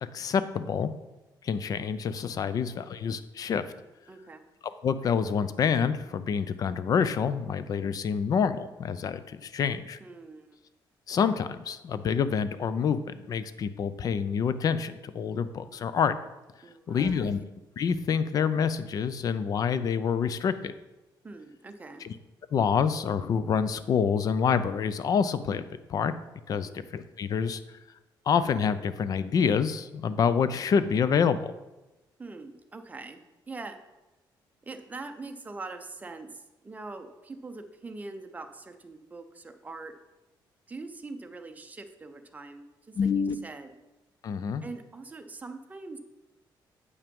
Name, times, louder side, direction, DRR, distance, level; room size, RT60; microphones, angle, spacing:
voice 1, 0.1-0.9 1.4-3.6 4.8-10.0 11.1-16.1 16.9-17.4 17.8-20.7 22.0-22.1 22.5-26.1 26.5-27.6 28.3-31.5 43.0-43.4 44.2-44.6, left 6 dB, 50° left, 13 dB, 0.5 m, -27 dB
voice 2, 2.5-2.9 4.1-4.4 10.0-10.6 16.6-17.4 21.2-22.0 26.6-26.8 32.2-33.2 33.5-33.8 34.6-39.9 40.7-43.7 44.6-46.0, right 3 dB, 20° right, 6 dB, 0.7 m, -43 dB
8.1 x 5.7 x 5.3 m, 1.0 s
cardioid pair, 130°, 8 cm